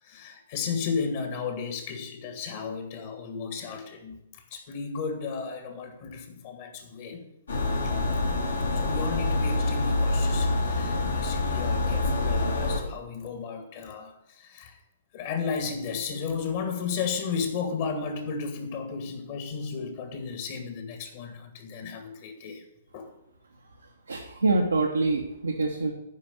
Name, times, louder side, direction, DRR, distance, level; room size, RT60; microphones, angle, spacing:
voice 1, 0.0-7.3 7.8-7.9 8.7-14.8 15.1-22.6 22.9-23.1, left 5 dB, 40° left, 6 dB, 2.1 m, -34 dB
sound 1, 7.5-12.8, left 2 dB, 65° left, 2.6 m, -26 dB
voice 2, 24.1-25.9, right 3 dB, 70° right, 1 dB, 1.2 m, -25 dB
9.9 x 5.3 x 8.1 m, 0.82 s
figure-of-eight pair, 115°, 0 cm